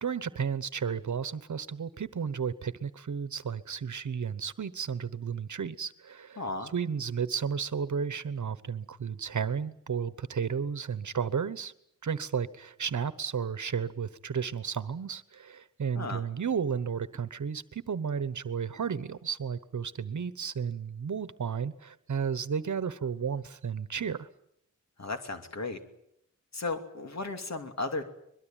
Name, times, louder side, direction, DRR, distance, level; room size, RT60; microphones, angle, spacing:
voice 1, 0.0-6.4 6.7-11.7 12.0-24.3, right 6 dB, 70° right, 14 dB, 1.1 m, -33 dB
voice 2, 6.4-6.7 15.9-16.2 25.0-25.8 26.5-28.0, left 3 dB, 60° left, 6 dB, 2.8 m, -35 dB
23.0 x 22.0 x 9.1 m, 0.76 s
wide cardioid pair, 105°, 31 cm